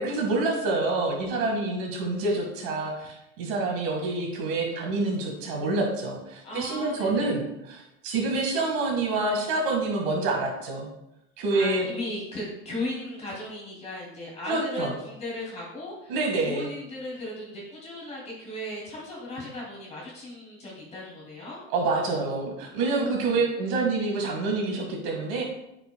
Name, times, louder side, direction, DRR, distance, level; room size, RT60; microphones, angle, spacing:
voice 1, 0.0-10.9 11.4-11.9 14.5-14.9 16.1-16.7 21.7-25.4, right 3 dB, 65° right, 0 dB, 1.8 m, -27 dB
voice 2, 6.4-7.4 11.5-16.2 16.4-21.6 22.8-23.4, left 1 dB, 20° left, -4 dB, 2.6 m, -36 dB
9.2 x 5.9 x 2.3 m, 0.87 s
supercardioid pair, 145°, 29 cm